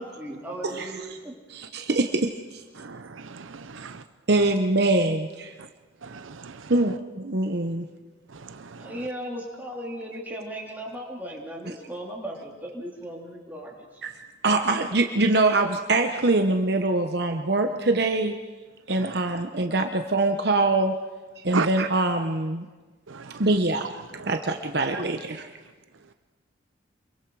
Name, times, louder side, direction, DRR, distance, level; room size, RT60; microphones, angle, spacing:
voice 1, 0.0-1.3 1.8-1.9 8.8-14.0, right 1 dB, 10° right, 3.2 m, -36 dB
voice 2, 1.5-2.6 4.3-5.5 6.7-7.9 14.0-14.1 14.4-18.3 18.9-21.0 21.4-22.7 23.4-23.9 24.3-25.5, right 2 dB, 55° right, 1.0 m, -23 dB
voice 3, 2.8-4.0 6.0-6.6 8.4-8.8 21.5-21.7 23.1-23.3, right 4 dB, 90° right, 0.8 m, -34 dB
27.5 x 22.5 x 4.8 m
head